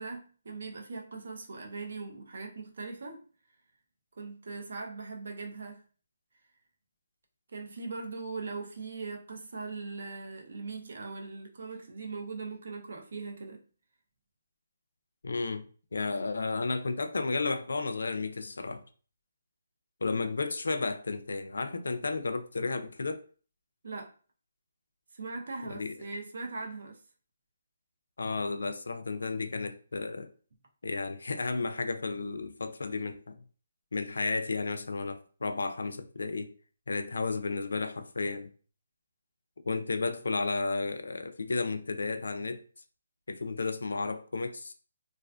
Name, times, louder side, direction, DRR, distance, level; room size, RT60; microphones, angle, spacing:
voice 1, 0.0-3.2 4.2-5.8 7.5-13.6 23.8-24.1 25.1-27.0, right 4 dB, 50° right, 0.5 m, -40 dB
voice 2, 15.2-15.6 15.9-18.8 20.0-23.2 25.6-26.0 28.2-30.3 30.8-33.4 33.9-36.5 36.9-38.5 39.7-42.6 43.3-44.7, left 3 dB, 85° left, 0.4 m, -33 dB
2.4 x 2.4 x 2.2 m
hypercardioid pair, 175°, 0 cm